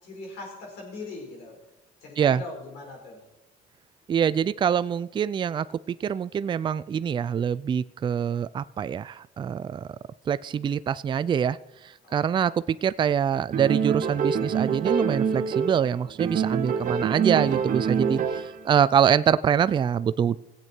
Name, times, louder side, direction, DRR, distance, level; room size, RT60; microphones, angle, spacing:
voice 1, 0.0-1.6 2.0-3.2 12.0-12.1, left 3 dB, 80° left, -1 dB, 4.6 m, -40 dB
voice 2, 4.1-9.9 10.3-11.6 12.1-20.4, right 8 dB, 30° right, 16 dB, 0.4 m, -25 dB
sound 1, 13.5-15.9 16.2-18.6, right 7 dB, 50° right, 1.3 m, -26 dB
18.5 x 8.2 x 4.5 m, 0.97 s
cardioid pair, 110°, 17 cm